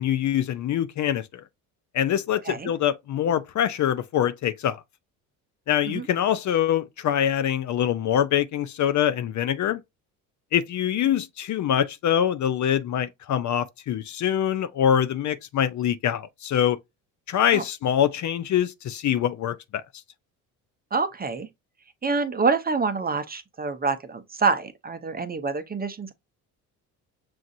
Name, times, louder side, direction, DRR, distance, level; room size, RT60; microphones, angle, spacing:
voice 1, 0.0-1.4 1.9-4.8 5.7-9.8 10.5-16.8 17.3-19.8, left 10 dB, 45° left, 0.5 m, -24 dB
voice 2, 20.9-21.5 22.0-26.1, right 4 dB, 20° right, 0.6 m, -26 dB
6.0 x 2.5 x 2.6 m
supercardioid pair, 75°, 41 cm